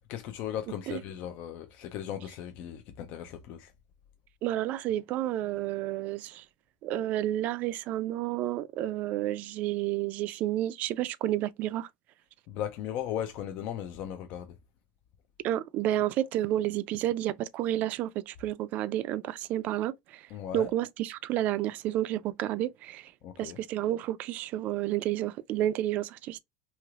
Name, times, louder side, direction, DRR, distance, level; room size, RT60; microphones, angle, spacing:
voice 1, 0.1-3.7 12.5-14.5 20.3-20.7 23.2-23.6, left 10 dB, 55° left, 0.4 m, -37 dB
voice 2, 4.4-6.4 6.8-11.9 15.4-20.2 20.5-23.1 23.4-26.4, right 13 dB, 50° right, 0.3 m, -30 dB
3.2 x 2.8 x 2.4 m
supercardioid pair, 130°, 3 cm